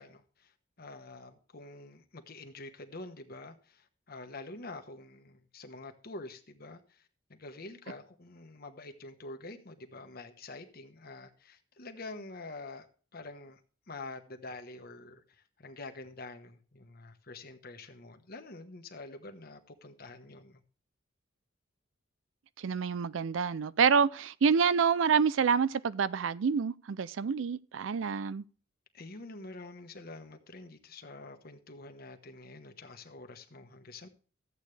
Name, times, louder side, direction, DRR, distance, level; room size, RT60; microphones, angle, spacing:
voice 1, 0.0-12.9 13.1-13.6 13.9-20.6 28.9-34.1, left 2 dB, 50° left, 1.2 m, -47 dB
voice 2, 22.6-28.4, right 6 dB, 75° right, 0.4 m, -27 dB
13.5 x 8.3 x 3.3 m
head